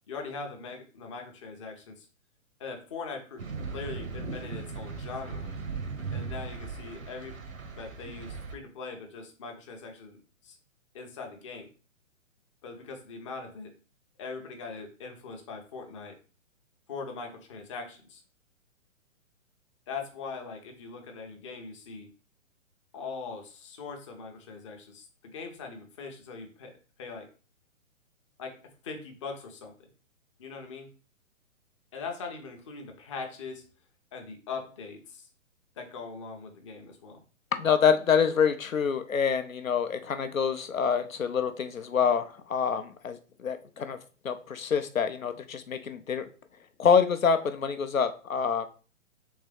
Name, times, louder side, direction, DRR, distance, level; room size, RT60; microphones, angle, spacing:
voice 1, 0.1-2.1 2.6-5.5 6.1-7.4 7.7-10.2 10.4-10.6 10.9-11.7 12.6-13.7 14.2-16.2 16.9-18.2 19.9-22.1 22.9-26.7 27.0-27.3 28.4-29.7 30.4-30.9 31.9-33.6 34.1-35.3 35.8-37.2, left 4 dB, 25° left, 3 dB, 0.6 m, -41 dB
sound 1, 3.4-8.5, right 4 dB, 75° right, 0.9 m, -38 dB
voice 2, 37.5-44.0 44.2-46.3 46.8-48.7, left 6 dB, 80° left, 9 dB, 0.6 m, -26 dB
3.6 x 3.1 x 3.2 m, 0.37 s
figure-of-eight pair, 125°, 40 cm